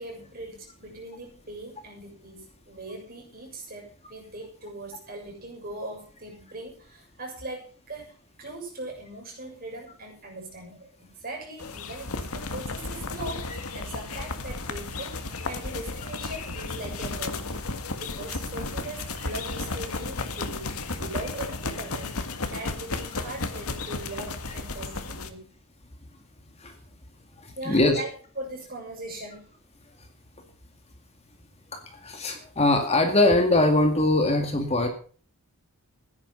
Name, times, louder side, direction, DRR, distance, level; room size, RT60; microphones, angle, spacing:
voice 1, 0.0-17.6 18.0-22.1 22.5-25.5 27.5-28.1 28.4-29.5, right 2 dB, 40° right, 0 dB, 7.0 m, -40 dB
sound 1, 11.6-25.3, left 3 dB, 80° left, 1.7 m, -33 dB
voice 2, 27.4-28.0 31.7-34.9, left 2 dB, 30° left, 5 dB, 2.2 m, -22 dB
16.0 x 10.5 x 5.7 m, 0.43 s
head